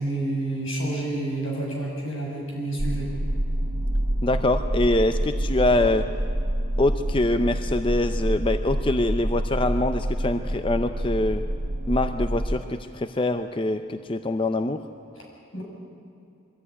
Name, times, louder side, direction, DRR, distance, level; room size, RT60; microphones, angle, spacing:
voice 1, 0.0-3.1 15.5-15.6, right 2 dB, 85° left, -2 dB, 7.0 m, -29 dB
sound 1, 2.8-12.6, right 1 dB, 50° right, 1.5 m, -27 dB
voice 2, 4.2-6.1 6.8-11.5 11.9-14.9, left 2 dB, 25° left, 9 dB, 0.5 m, -24 dB
23.0 x 14.0 x 9.7 m, 2.6 s
head